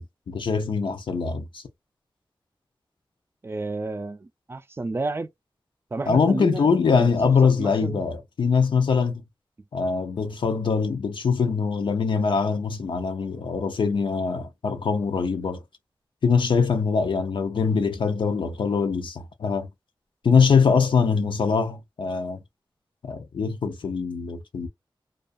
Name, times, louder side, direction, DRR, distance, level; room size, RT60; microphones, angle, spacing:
voice 1, 0.0-1.6 6.1-9.2 9.7-15.6 16.2-19.7 20.2-22.4 23.0-24.7, left 5 dB, 75° left, 0.5 m, -23 dB
voice 2, 3.4-5.3 5.9-6.7 6.9-7.3 7.6-8.0, right 3 dB, 30° right, 0.4 m, -31 dB
2.4 x 2.3 x 2.5 m
wide cardioid pair, 115°, 8 cm